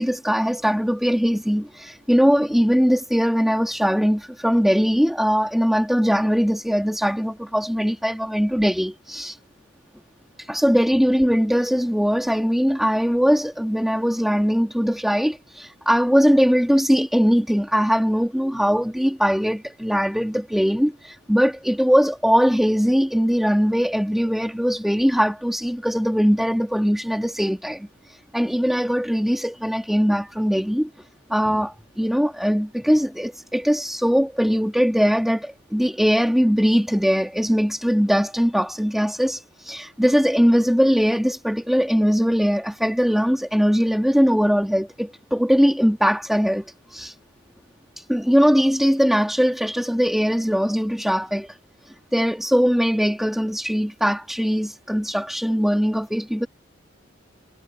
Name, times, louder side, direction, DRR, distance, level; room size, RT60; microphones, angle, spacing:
voice 1, 0.0-9.4 10.4-30.9 31.3-47.1 48.0-51.6 51.9-56.5, equal, ahead, 1.4 m, -21 dB
head